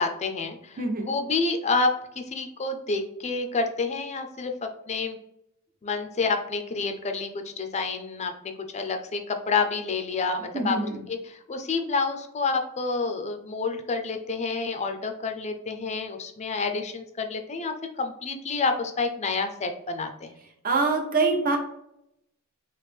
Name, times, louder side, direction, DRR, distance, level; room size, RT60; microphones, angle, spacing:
voice 1, 0.0-1.9 2.3-4.5 4.9-5.2 5.8-7.3 7.6-8.3 8.7-10.8 11.1-11.2 11.5-20.3, left 4 dB, 30° left, 6 dB, 0.5 m, -28 dB
voice 2, 0.8-1.1 10.5-11.0 20.6-21.6, right 3 dB, 40° right, 3 dB, 0.7 m, -24 dB
3.2 x 2.9 x 3.4 m, 0.80 s
head